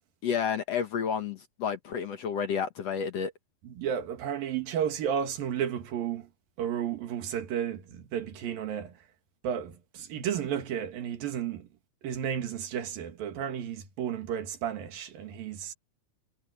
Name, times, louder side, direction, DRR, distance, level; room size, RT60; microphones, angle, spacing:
voice 1, 0.2-3.3, left 7 dB, 60° left, 1.8 m, -30 dB
voice 2, 3.6-6.3 6.6-9.0 9.4-11.7 12.0-15.7, right 9 dB, 65° right, 3.6 m, -33 dB
omnidirectional pair, 4.5 m